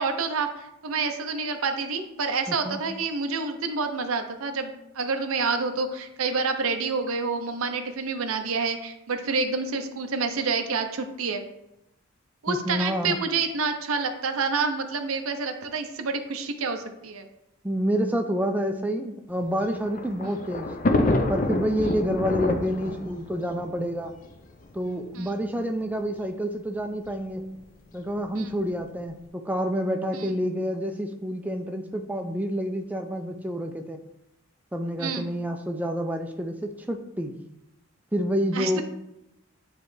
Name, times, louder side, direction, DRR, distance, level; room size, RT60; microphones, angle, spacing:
voice 1, 0.0-11.4 12.4-17.3 25.1-25.3 28.3-28.5 30.1-30.3 35.0-35.3 38.5-38.8, right 4 dB, 90° right, 6 dB, 0.6 m, -28 dB
voice 2, 2.5-2.8 12.5-13.2 17.6-20.7 21.3-24.1 24.7-27.5 27.9-34.0 34.7-37.3 38.1-38.8, equal, 10° right, 5 dB, 0.4 m, -28 dB
Thunder, 19.4-24.7 25.5-25.6 25.9-26.0 27.0-27.3, left 2 dB, 40° left, 0.5 m, -27 dB
9.3 x 3.2 x 3.2 m, 0.86 s
head